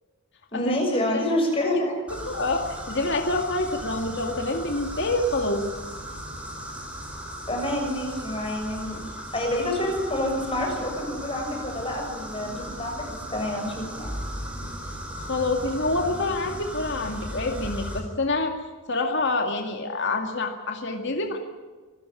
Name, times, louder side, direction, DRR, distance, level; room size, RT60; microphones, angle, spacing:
voice 1, 0.5-1.9 7.5-9.0 9.3-14.1, left 1 dB, 25° left, 1 dB, 7.2 m, -27 dB
voice 2, 2.1-2.6 2.9-5.7 15.2-18.6 18.9-21.4, left 2 dB, 55° left, 4 dB, 2.2 m, -27 dB
sound 1, 2.1-18.0, equal, 5° right, 4.5 m, -37 dB
27.0 x 14.0 x 10.0 m, 1.3 s
head